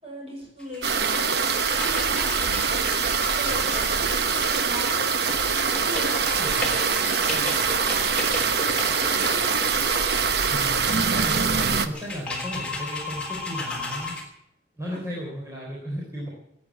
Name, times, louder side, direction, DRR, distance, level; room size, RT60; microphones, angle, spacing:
voice 1, 0.0-2.9 3.4-5.1 5.8-7.4 7.7-9.7, equal, 30° right, -1 dB, 6.1 m, -39 dB
sound 1, 0.6-14.2, left 2 dB, 5° left, 3.1 m, -35 dB
sound 2, 0.8-11.9, right 5 dB, 55° right, 1.0 m, -24 dB
voice 2, 6.3-6.7 10.5-10.7 11.1-14.1 14.8-16.3, equal, 15° right, -4 dB, 3.7 m, -35 dB
18.0 x 8.6 x 8.3 m, 0.78 s
head